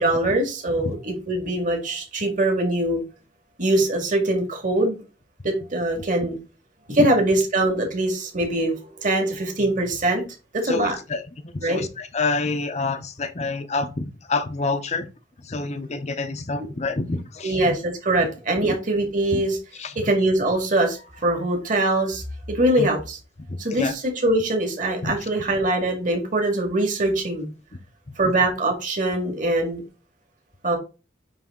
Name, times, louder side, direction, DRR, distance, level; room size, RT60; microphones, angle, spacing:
voice 1, 0.0-3.0 3.6-5.0 5.4-6.4 6.9-10.2 10.5-11.0 11.6-11.8 17.4-19.6 20.0-23.2 23.6-27.5 28.2-29.8 30.6-30.8, right 1 dB, 45° right, 2.0 m, -23 dB
voice 2, 10.7-15.1 15.4-17.8 18.6-18.8 19.3-19.4 19.8-20.1 22.8-22.9 23.5-24.0 25.0-25.2 28.2-28.3, left 3 dB, 35° left, 0.7 m, -28 dB
9.4 x 3.4 x 3.7 m
head